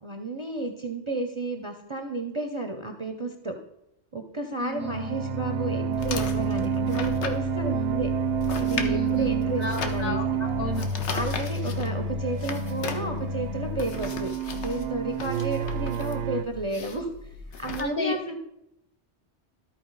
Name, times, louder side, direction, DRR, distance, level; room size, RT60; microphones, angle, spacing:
voice 1, 0.0-3.6 4.1-8.1 8.6-10.2 11.1-17.1 17.6-18.3, right 2 dB, 35° right, 5 dB, 0.5 m, -32 dB
voice 2, 4.6-5.2 8.8-10.9 17.8-18.2, left 2 dB, 55° left, 2 dB, 1.3 m, -33 dB
sound 1, 4.7-16.4, right 4 dB, 90° right, 0.9 m, -29 dB
sound 2, 5.9-17.8, left 5 dB, 80° left, 1.1 m, -37 dB
13.0 x 4.5 x 3.9 m, 0.81 s
omnidirectional pair, 1.2 m